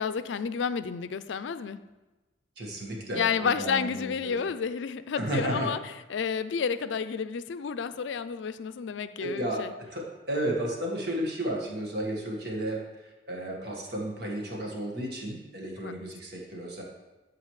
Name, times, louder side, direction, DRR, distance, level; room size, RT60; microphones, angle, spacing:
voice 1, 0.0-1.8 3.2-9.7 15.8-15.9, left 6 dB, 80° left, 13 dB, 0.4 m, -31 dB
voice 2, 2.6-4.4 5.2-5.7 9.2-12.8 13.3-16.8, right 1 dB, 60° right, -1 dB, 1.6 m, -33 dB
13.0 x 5.0 x 3.2 m, 1.1 s
head